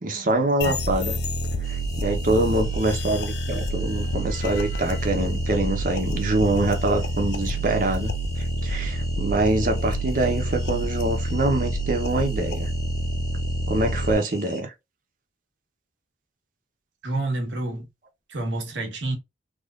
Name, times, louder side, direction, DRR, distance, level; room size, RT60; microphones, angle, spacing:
voice 1, 0.0-1.2 1.6-12.7 13.7-14.7, right 2 dB, 50° right, 0.9 m, -25 dB
sound 1, 0.6-14.1, equal, 65° left, 0.5 m, -28 dB
sound 2, 1.6-14.6, equal, ahead, 1.2 m, -43 dB
voice 2, 17.0-17.9 18.3-19.1, right 2 dB, 85° right, 1.3 m, -28 dB
3.7 x 3.0 x 2.5 m
head